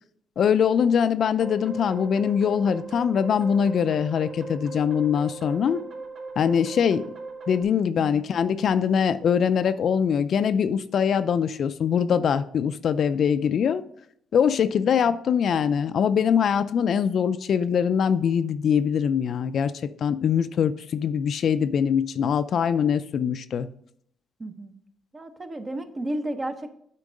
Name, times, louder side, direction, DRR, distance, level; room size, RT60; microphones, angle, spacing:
voice 1, 0.4-5.8 6.4-7.0 7.5-13.8 14.3-19.7 20.0-23.7, left 7 dB, 60° left, 12 dB, 0.4 m, -23 dB
sound 1, 1.4-7.6, right 3 dB, 55° right, 2.4 m, -38 dB
voice 2, 24.4-24.8 25.1-26.7, right 1 dB, 30° right, 8 dB, 0.9 m, -33 dB
8.3 x 4.5 x 5.1 m, 0.70 s
cardioid pair, 90°, 0 cm